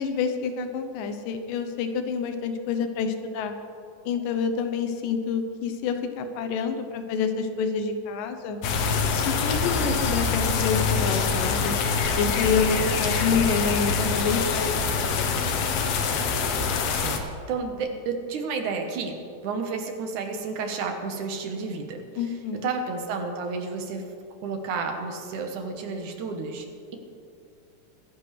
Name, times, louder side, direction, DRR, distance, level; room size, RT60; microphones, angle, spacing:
voice 1, 0.0-3.5 4.1-8.6 9.3-11.8 12.2-15.4 22.2-22.7, left 5 dB, 90° left, 7 dB, 2.6 m, -28 dB
sound 1, 8.6-17.2, left 5 dB, 65° left, 1.7 m, -25 dB
voice 2, 16.9-19.2 19.4-22.3 22.6-24.1 24.4-26.7, right 4 dB, 75° right, 4 dB, 2.5 m, -31 dB
23.5 x 10.5 x 3.3 m, 2.4 s
omnidirectional pair, 3.7 m